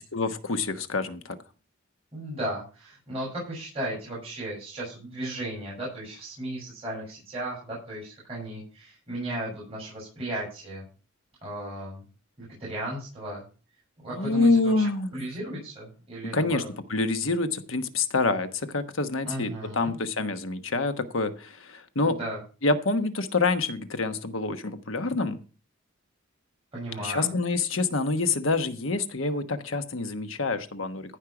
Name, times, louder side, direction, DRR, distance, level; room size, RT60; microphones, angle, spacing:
voice 1, 0.1-1.4 14.1-15.2 16.2-16.6 16.9-22.2 22.6-25.4 27.0-31.2, left 3 dB, 75° left, 9 dB, 1.2 m, -27 dB
voice 2, 2.1-10.9 11.4-12.0 12.4-13.4 14.0-16.7 19.2-19.9 22.0-22.4 26.7-27.3, right 1 dB, 30° right, -5 dB, 6.5 m, -35 dB
15.0 x 5.5 x 6.0 m, 0.35 s
head